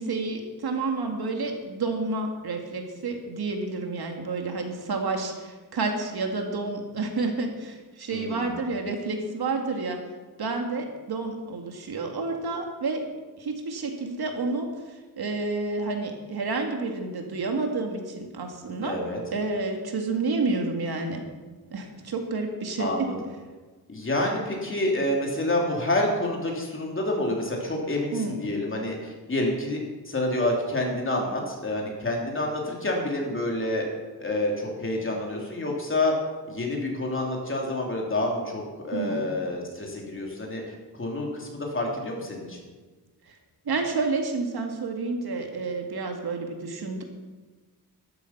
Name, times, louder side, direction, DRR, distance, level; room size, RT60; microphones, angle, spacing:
voice 1, 0.0-10.0 10.4-13.1 13.4-19.0 19.3-21.2 21.7-23.1 28.1-28.4 38.9-39.2 43.3-43.4 43.7-47.0, right 3 dB, 70° right, 3 dB, 2.2 m, -30 dB
voice 2, 8.1-8.6 18.8-19.2 22.8-23.2 23.9-33.9 34.2-36.1 36.5-40.6 40.9-42.7, left 1 dB, 30° left, -1 dB, 3.3 m, -28 dB
13.0 x 12.5 x 6.0 m, 1.3 s
wide cardioid pair, 135°, 39 cm